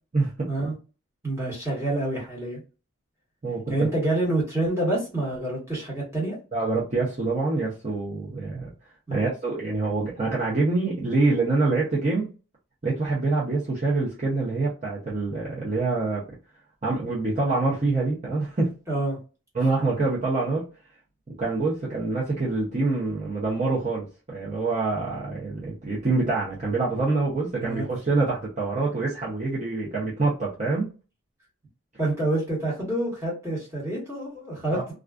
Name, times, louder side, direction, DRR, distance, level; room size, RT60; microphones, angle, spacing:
voice 1, 0.1-0.5 3.4-3.9 6.5-8.7 9.1-12.3 12.8-16.2 16.8-18.7 19.5-20.6 21.4-30.9 34.7-34.8, right 3 dB, 35° right, -5 dB, 0.6 m, -25 dB
voice 2, 1.2-2.6 3.7-6.4 9.1-9.3 18.9-19.2 27.5-27.8 32.0-34.9, right 1 dB, 15° right, -5 dB, 1.1 m, -27 dB
2.4 x 2.3 x 2.3 m, 0.33 s
head